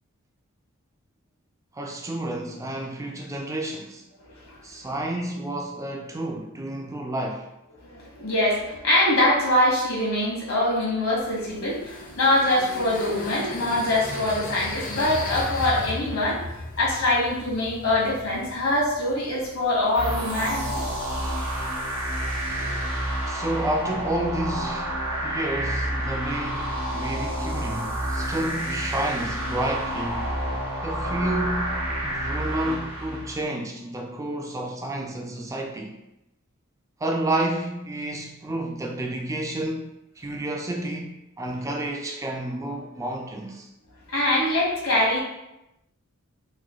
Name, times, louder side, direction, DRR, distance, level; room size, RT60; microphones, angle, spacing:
voice 1, 1.7-4.0 4.6-7.5 23.3-30.5 30.8-36.0 37.0-43.7, right 1 dB, 15° right, 1 dB, 0.4 m, -30 dB
voice 2, 7.8-16.4 16.8-20.8 22.5-22.7 44.1-45.2, left 1 dB, 70° left, -4 dB, 1.2 m, -23 dB
sound 1, 11.2-21.6, left 2 dB, 40° left, 0.6 m, -37 dB
sound 2, 19.9-33.4, right 1 dB, 75° right, 0.9 m, -29 dB
3.1 x 2.2 x 3.6 m, 0.90 s
head